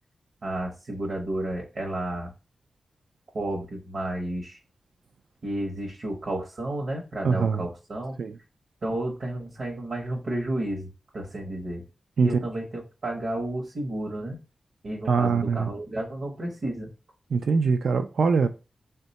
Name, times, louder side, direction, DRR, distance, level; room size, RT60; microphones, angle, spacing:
voice 1, 0.4-2.3 3.3-4.6 5.4-8.2 8.8-10.9 11.1-11.8 12.2-14.4 14.8-16.9, right 1 dB, 55° right, 0.8 m, -32 dB
voice 2, 7.2-7.7 8.2-8.4 12.2-12.4 15.1-15.7 17.3-18.5, right 5 dB, 75° right, 0.3 m, -23 dB
3.6 x 2.2 x 3.9 m
wide cardioid pair, 150°, 0 cm